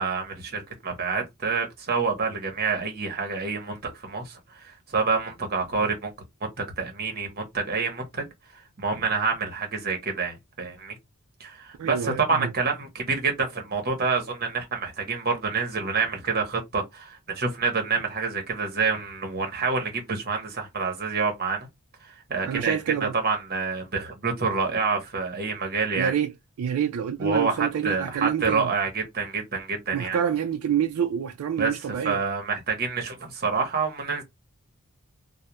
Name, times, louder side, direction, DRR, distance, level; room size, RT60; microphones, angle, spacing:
voice 1, 0.0-6.1 6.6-8.2 8.5-11.0 11.4-21.7 22.3-26.1 27.2-30.2 31.6-34.2, right 4 dB, 45° right, 0.8 m, -27 dB
voice 2, 11.8-12.5 22.5-23.1 25.9-26.3 26.6-28.7 29.9-32.2, right 8 dB, 80° right, 0.3 m, -27 dB
2.3 x 2.1 x 2.8 m
head